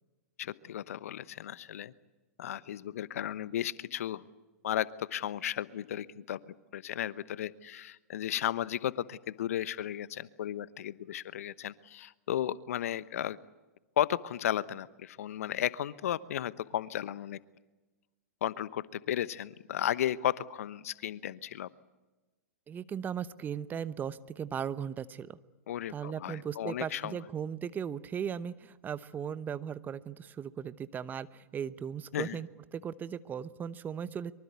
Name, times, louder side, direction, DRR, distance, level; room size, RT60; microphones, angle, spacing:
voice 1, 0.4-1.9 2.4-4.2 4.6-13.4 14.0-17.4 18.4-21.7 25.7-27.2 32.1-32.4, left 11 dB, 65° left, 18 dB, 1.0 m, -34 dB
voice 2, 22.7-25.4 25.9-34.3, right 8 dB, 20° right, 16 dB, 1.0 m, -37 dB
24.5 x 24.0 x 8.3 m, 1.1 s
hypercardioid pair, 110°, 8 cm